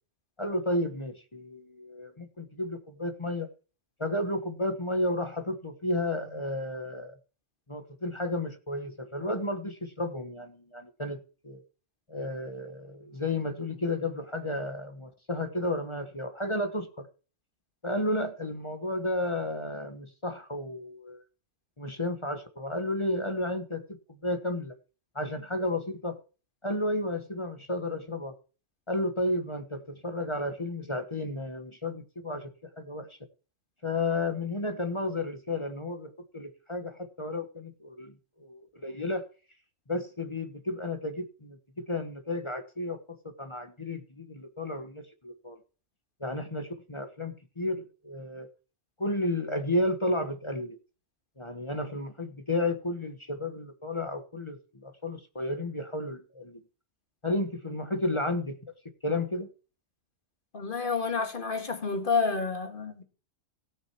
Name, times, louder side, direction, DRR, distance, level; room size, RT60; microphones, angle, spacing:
voice 1, 0.4-3.5 4.0-7.1 7.7-11.6 12.1-17.1 17.8-21.2 21.8-24.7 25.1-26.2 26.6-28.3 28.9-33.2 33.8-39.2 39.9-45.6 46.2-48.5 49.0-50.8 51.4-56.6 57.2-58.6 59.0-59.5, left 1 dB, 25° left, 1.1 m, -32 dB
voice 2, 60.5-63.0, left 4 dB, 40° left, 2.0 m, -29 dB
17.0 x 6.4 x 4.5 m
omnidirectional pair, 1.3 m